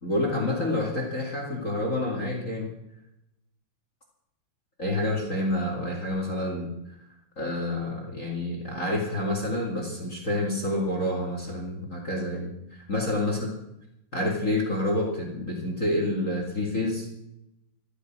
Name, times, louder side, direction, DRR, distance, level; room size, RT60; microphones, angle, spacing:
voice 1, 0.0-2.7 4.8-6.7 7.4-12.5 12.9-13.5 14.1-17.1, left 1 dB, 25° left, 1 dB, 1.9 m, -28 dB
13.5 x 13.5 x 6.2 m, 0.85 s
omnidirectional pair, 4.9 m